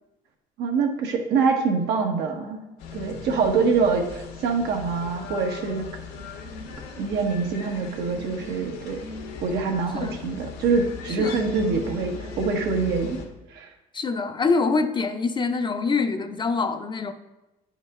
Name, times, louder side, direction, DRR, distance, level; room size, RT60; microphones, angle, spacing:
voice 1, 0.6-2.6 2.9-5.9 7.0-9.0 9.4-13.2 13.5-13.7, right 4 dB, 80° right, 2 dB, 1.4 m, -25 dB
sound 1, 2.8-13.2, left 5 dB, 85° left, 1.5 m, -38 dB
voice 2, 13.9-17.1, left 4 dB, 25° left, 8 dB, 0.6 m, -25 dB
9.9 x 5.3 x 3.7 m, 0.99 s
cardioid pair, 110°, 17 cm